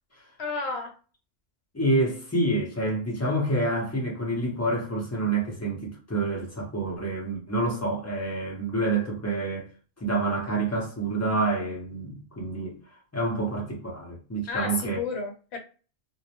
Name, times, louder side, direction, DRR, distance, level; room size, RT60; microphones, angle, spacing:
voice 1, 0.4-0.9 14.5-15.6, left 4 dB, 65° left, 0.8 m, -31 dB
voice 2, 1.7-9.7 10.0-12.8 13.1-15.0, right 2 dB, 20° left, 0.4 m, -28 dB
2.2 x 2.0 x 2.8 m
omnidirectional pair, 1.3 m